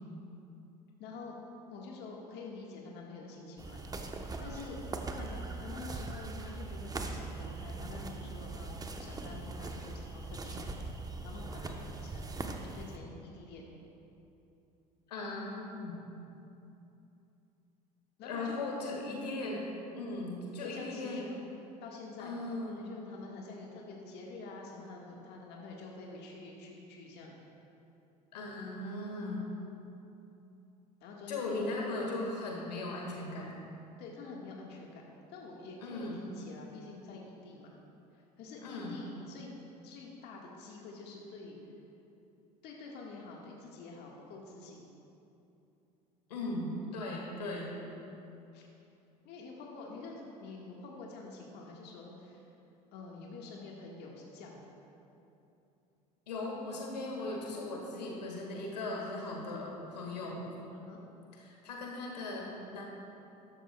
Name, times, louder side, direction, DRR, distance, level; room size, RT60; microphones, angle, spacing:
voice 1, 1.0-1.3 1.7-4.8 5.1-10.7 11.2-12.3 12.6-13.7 18.2-18.6 19.1-19.3 20.6-21.4 21.8-22.3 22.8-27.4 31.0-31.7 32.0-32.2 34.0-35.0 35.3-37.8 38.1-39.5 39.8-41.6 42.6-44.8 48.5-48.6 49.2-52.4 52.9-54.7 60.7-61.0, left 3 dB, 55° left, -2 dB, 1.5 m, -47 dB
sound 1, 3.6-13.0, right 3 dB, 20° right, 0.9 m, -41 dB
voice 2, 15.1-16.0 18.2-19.6 19.9-21.3 22.2-22.9 28.3-29.6 31.3-33.5 35.8-36.3 38.6-39.0 46.3-47.7 56.3-60.5 61.3-62.9, left 2 dB, 85° left, -1 dB, 1.8 m, -38 dB
13.5 x 12.0 x 2.3 m, 2.8 s
hypercardioid pair, 70°, 20 cm